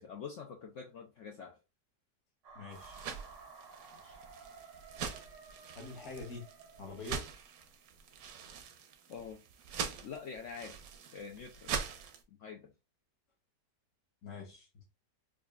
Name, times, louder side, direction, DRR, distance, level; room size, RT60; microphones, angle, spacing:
voice 1, 0.0-1.6 3.9-4.2 9.1-9.4 10.0-10.8 11.1-11.7 12.3-12.7, left 6 dB, 80° left, 0.6 m, -46 dB
sound 1, 2.4-7.4, right 4 dB, 90° right, 1.7 m, -54 dB
voice 2, 2.5-3.0 5.7-6.5 6.8-7.3 14.2-14.8, left 4 dB, 60° left, 1.3 m, -45 dB
sound 2, 2.7-12.2, right 7 dB, 70° right, 1.0 m, -43 dB
4.9 x 2.4 x 2.3 m
omnidirectional pair, 1.9 m